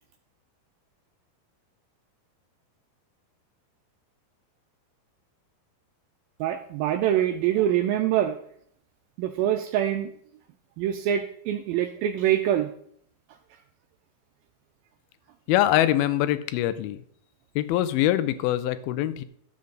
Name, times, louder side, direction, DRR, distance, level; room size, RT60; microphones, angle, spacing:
voice 1, 6.4-8.4 9.2-10.1 10.8-12.7, right 11 dB, 85° right, 6 dB, 2.2 m, -24 dB
voice 2, 15.5-17.0 17.6-19.2, left 13 dB, 80° left, 13 dB, 2.4 m, -23 dB
12.5 x 7.0 x 3.9 m, 0.65 s
omnidirectional pair, 4.7 m